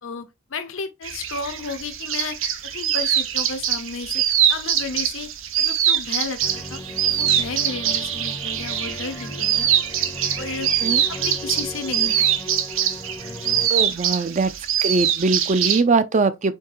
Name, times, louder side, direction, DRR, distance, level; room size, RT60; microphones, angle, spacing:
voice 1, 0.0-4.2 4.5-5.3 5.6-6.8 7.1-9.7 10.4-10.7 11.1-12.3 13.4-13.6, left 4 dB, 80° left, 0.8 m, -33 dB
sound 1, 1.0-15.8, right 10 dB, 80° right, 0.7 m, -23 dB
sound 2, 6.4-13.7, left 1 dB, 15° left, 0.6 m, -37 dB
voice 2, 13.7-14.5 14.8-16.5, right 3 dB, 35° right, 0.4 m, -21 dB
4.4 x 3.3 x 3.1 m
head